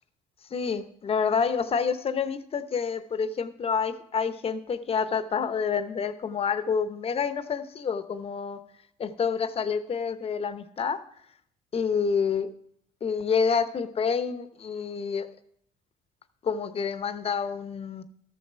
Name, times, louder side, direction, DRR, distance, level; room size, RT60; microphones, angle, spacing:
voice 1, 0.5-8.6 9.0-11.0 11.7-12.5 13.0-15.3 16.4-18.0, left 6 dB, 35° left, 11 dB, 0.8 m, -28 dB
13.0 x 6.8 x 4.4 m, 0.70 s
cardioid pair, 110°, 17 cm